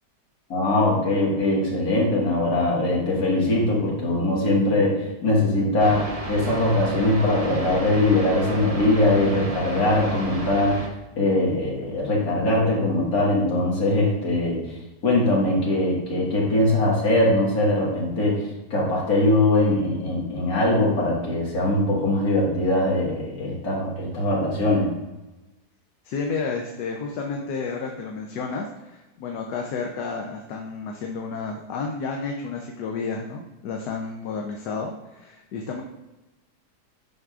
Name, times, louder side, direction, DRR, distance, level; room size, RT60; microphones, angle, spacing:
voice 1, 0.5-10.8 11.2-14.6 15.0-24.9, left 1 dB, 65° left, -5 dB, 2.3 m, -21 dB
sound 1, 5.8-10.9, right 1 dB, 70° right, 0.3 m, -33 dB
voice 2, 26.0-35.8, left 4 dB, 80° left, 1 dB, 1.3 m, -31 dB
8.0 x 6.0 x 2.4 m, 1.0 s
omnidirectional pair, 1.8 m